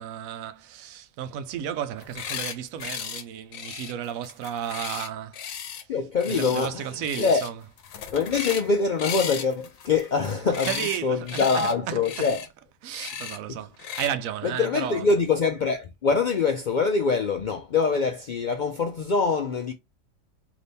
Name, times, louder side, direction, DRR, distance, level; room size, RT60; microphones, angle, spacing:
voice 1, 0.0-5.4 6.3-7.5 10.6-12.0 12.8-15.1, right 10 dB, 85° right, 1.0 m, -33 dB
sound 1, 2.0-2.6 2.8-3.2 3.5-5.8 6.2-6.7 7.0-7.5 7.8-8.7 9.0-11.0 11.3-11.7 12.0-12.5 12.9-13.4 13.8-14.1, left 8 dB, 85° left, 1.1 m, -35 dB
voice 2, 5.9-7.4 8.1-12.5 13.5-13.6 14.4-19.7, left 4 dB, 65° left, 0.4 m, -24 dB
4.0 x 2.9 x 3.4 m
omnidirectional pair, 1.4 m